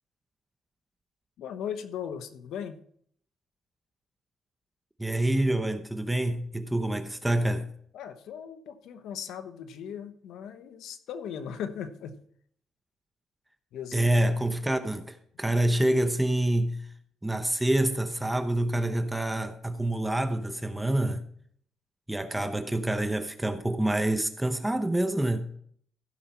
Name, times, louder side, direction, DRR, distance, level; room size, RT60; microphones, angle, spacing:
voice 1, 1.4-2.8 7.9-12.2 13.7-14.3 15.5-15.6, left 8 dB, 80° left, 1.0 m, -38 dB
voice 2, 5.0-7.7 13.9-16.9 17.2-21.2 22.1-25.5, right 1 dB, 10° right, 0.9 m, -27 dB
15.0 x 5.9 x 4.3 m
cardioid pair, 90°, 0 cm